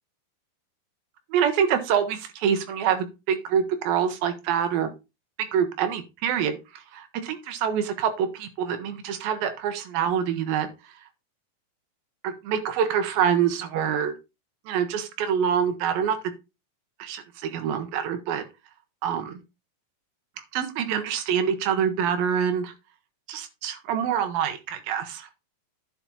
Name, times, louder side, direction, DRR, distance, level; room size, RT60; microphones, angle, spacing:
voice 1, 1.3-4.9 5.5-10.7 12.2-14.2 14.7-16.2 17.0-18.4 19.0-19.4 20.5-22.7 23.3-25.3, right 8 dB, 90° right, 8 dB, 2.9 m, -26 dB
10.5 x 5.9 x 4.1 m, 0.26 s
omnidirectional pair, 4.1 m